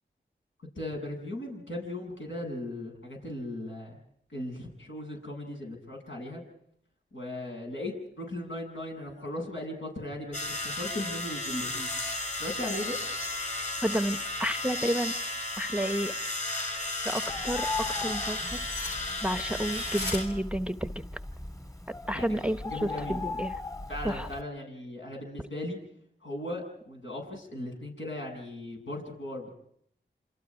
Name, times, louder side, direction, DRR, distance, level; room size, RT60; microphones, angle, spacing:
voice 1, 0.8-4.0 4.3-6.4 7.1-11.9 12.4-13.0 22.1-22.3 22.7-23.2 23.9-25.8 26.2-29.5, left 1 dB, 75° left, 0 dB, 7.7 m, -37 dB
sound 1, 10.3-20.2, left 2 dB, 35° left, 7.3 m, -34 dB
sound 2, 11.9-14.3 14.7-20.2, left 2 dB, 60° left, 6.8 m, -44 dB
voice 2, 13.8-15.1 15.6-16.1 17.0-18.6 19.2-21.0 22.1-23.6 24.0-24.3, equal, 5° right, 10 dB, 0.9 m, -31 dB
Bird, 17.3-24.4, left 3 dB, 15° left, 2.3 m, -38 dB
28.0 x 27.0 x 4.9 m, 0.69 s
cardioid pair, 45°, 20 cm